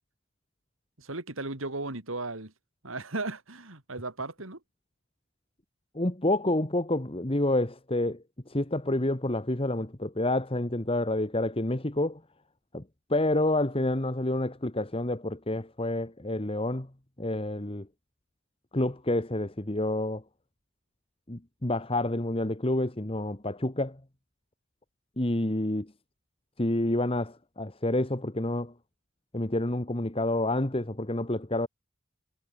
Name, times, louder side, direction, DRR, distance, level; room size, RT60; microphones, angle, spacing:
voice 1, 1.0-2.5 2.8-4.6, right 2 dB, 80° right, 3.4 m, -36 dB
voice 2, 5.9-12.2 12.7-12.8 13.1-16.9 17.2-17.9 18.7-20.2 21.3-24.0 25.2-25.9 26.6-28.7 29.3-31.7, left 1 dB, 25° left, 1.5 m, -28 dB
head